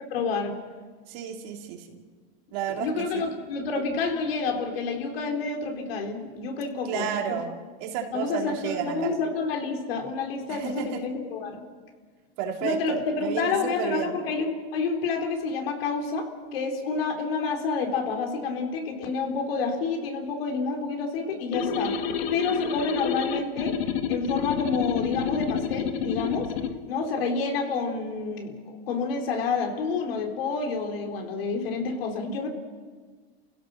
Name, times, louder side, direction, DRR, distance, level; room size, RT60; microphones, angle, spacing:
voice 1, 0.1-0.5 2.7-7.4 8.1-11.6 12.6-21.9 22.3-23.8 24.1-26.5 26.9-32.5, left 4 dB, 70° left, 2 dB, 4.3 m, -29 dB
voice 2, 1.1-2.0 2.5-2.9 3.1-3.2 6.9-7.5 7.8-9.1 10.5-11.0 12.4-14.2, right 8 dB, 50° right, 2 dB, 2.9 m, -32 dB
sound 1, 21.5-26.7, left 7 dB, 90° left, 1.7 m, -29 dB
29.5 x 16.0 x 6.6 m, 1.5 s
supercardioid pair, 160°, 30 cm